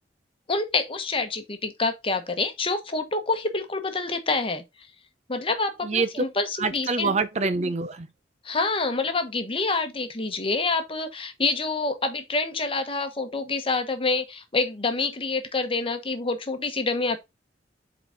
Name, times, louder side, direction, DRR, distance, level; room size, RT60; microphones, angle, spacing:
voice 1, 0.5-4.6 5.3-7.1 8.4-17.2, left 3 dB, 30° left, 1.1 m, -27 dB
voice 2, 5.8-6.2 6.6-8.1, right 4 dB, 40° right, 0.6 m, -25 dB
7.9 x 3.9 x 3.9 m
head